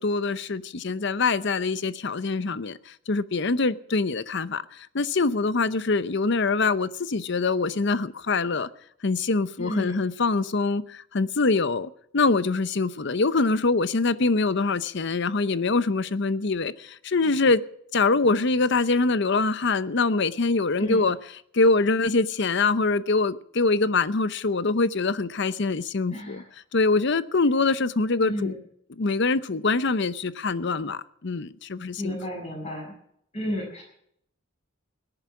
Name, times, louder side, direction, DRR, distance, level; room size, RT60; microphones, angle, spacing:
voice 1, 0.0-2.8 3.1-4.6 4.9-8.7 9.0-17.6 17.9-21.2 21.5-26.4 26.7-28.5 29.0-32.2, left 3 dB, 60° left, 0.7 m, -24 dB
voice 2, 9.6-10.0 20.8-21.1 26.1-26.5 28.2-28.6 32.0-32.9 33.3-33.8, equal, 30° left, 7.0 m, -32 dB
18.0 x 11.0 x 6.0 m
head